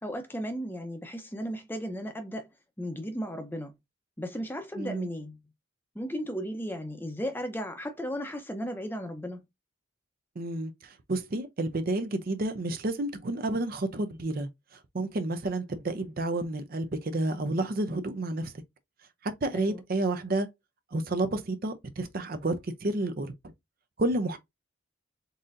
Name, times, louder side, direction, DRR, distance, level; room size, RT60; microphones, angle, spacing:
voice 1, 0.0-2.5 2.8-3.7 4.2-5.4 5.9-9.4 19.5-19.8, equal, 10° left, 0.6 m, -35 dB
voice 2, 4.7-5.1 10.4-18.5 19.2-20.5 20.9-23.3 24.0-24.4, right 2 dB, 45° right, 0.5 m, -30 dB
4.0 x 3.7 x 2.6 m
head